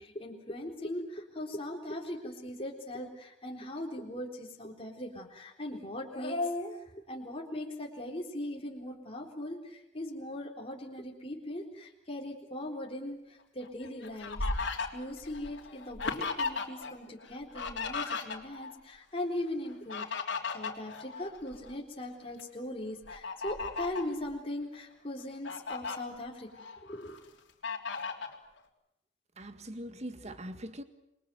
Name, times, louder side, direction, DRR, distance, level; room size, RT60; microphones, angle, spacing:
voice 1, 0.0-27.1, left 1 dB, 30° left, 0 dB, 3.8 m, -39 dB
Fowl, 13.6-16.9 17.2-18.7 19.7-21.8 22.2-22.4 23.1-24.1 24.7-24.8 25.2-26.0 26.5-27.2 27.6-28.4, left 4 dB, 80° left, 3.4 m, -36 dB
voice 2, 29.4-30.8, right 1 dB, 35° right, 9 dB, 1.9 m, -42 dB
27.5 x 22.0 x 7.8 m, 0.86 s
head